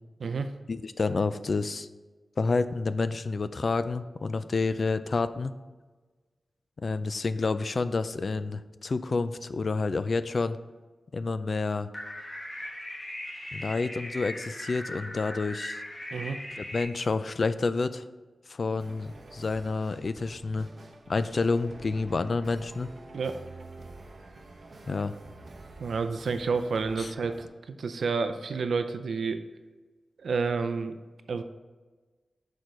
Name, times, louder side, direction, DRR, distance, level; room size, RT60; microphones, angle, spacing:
voice 1, 0.7-1.9 2.4-5.5 6.8-10.6 11.1-11.9 13.5-15.8 16.6-18.0 18.5-20.7 21.1-22.9 24.9-25.2 27.0-27.1, left 3 dB, 45° left, 13 dB, 0.3 m, -29 dB
sound 1, 11.9-16.8, left 1 dB, 25° left, 1.1 m, -39 dB
sound 2, 18.8-27.5, right 2 dB, 45° right, 0.8 m, -48 dB
voice 2, 25.8-29.4 30.2-31.0 31.3-31.4, right 4 dB, 70° right, 9 dB, 0.4 m, -30 dB
6.5 x 4.5 x 5.2 m, 1.3 s
wide cardioid pair, 145°, 0 cm